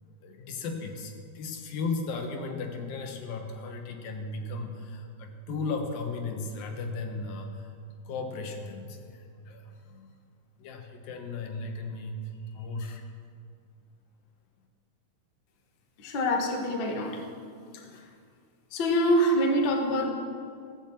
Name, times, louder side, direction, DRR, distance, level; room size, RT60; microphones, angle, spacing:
voice 1, 0.2-10.1 10.6-13.0, left 3 dB, 75° left, 4 dB, 2.9 m, -36 dB
voice 2, 16.0-17.2 17.7-18.0 18.7-20.1, equal, 50° left, 2 dB, 1.4 m, -25 dB
15.0 x 8.0 x 7.4 m, 2.2 s
omnidirectional pair, 4.1 m